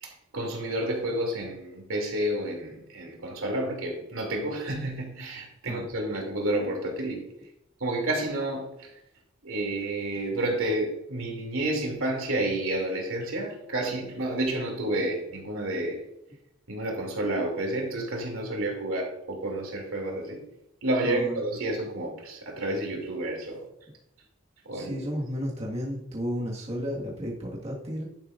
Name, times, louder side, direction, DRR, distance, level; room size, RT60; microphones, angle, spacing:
voice 1, 0.0-7.3 7.8-8.9 9.4-16.0 16.7-20.4 20.8-23.6 24.6-25.0, right 1 dB, 80° right, 1 dB, 2.7 m, -30 dB
voice 2, 21.0-21.4 24.7-28.1, equal, 30° right, -4 dB, 1.7 m, -33 dB
11.0 x 9.8 x 2.5 m, 0.84 s
head